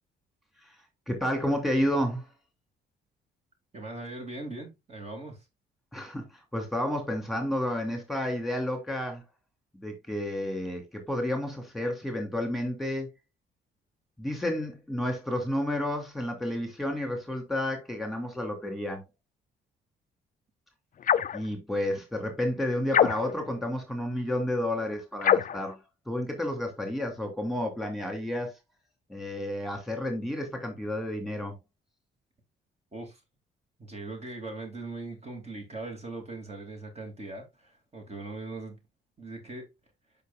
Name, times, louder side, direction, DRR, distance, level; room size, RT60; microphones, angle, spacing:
voice 1, 1.1-2.3 5.9-6.3 6.5-9.2 9.7-13.1 14.2-19.1 21.3-25.8 26.1-28.5 29.1-31.6, left 1 dB, ahead, 2.8 m, -31 dB
voice 2, 3.7-5.4 32.9-33.2 33.8-38.8 39.2-39.7, right 2 dB, 30° right, 2.7 m, -40 dB
sound 1, 21.0-21.4 22.9-23.5 25.2-25.6, left 8 dB, 45° left, 0.5 m, -24 dB
8.2 x 5.8 x 2.5 m
cardioid pair, 90°, 20 cm